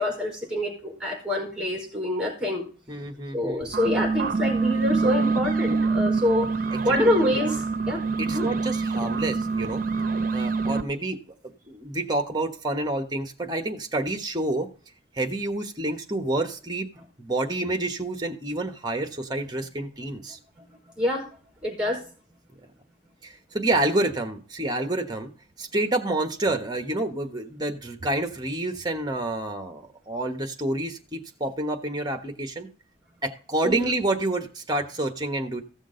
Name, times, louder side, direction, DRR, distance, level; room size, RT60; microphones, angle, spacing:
voice 1, 0.0-2.6 3.3-6.5 6.8-8.0 8.3-8.5 21.0-21.2 21.6-22.0 33.6-33.9, left 1 dB, 5° right, 1 dB, 4.4 m, -26 dB
voice 2, 2.9-3.8 6.7-7.1 8.2-9.8 10.3-11.3 11.7-14.7 15.1-16.9 17.2-20.4 23.2-25.3 25.6-32.7 33.2-35.6, right 2 dB, 20° right, 7 dB, 1.3 m, -28 dB
sound 1, 3.6-10.8, right 4 dB, 45° right, 0.8 m, -26 dB
15.0 x 6.3 x 3.9 m, 0.40 s
head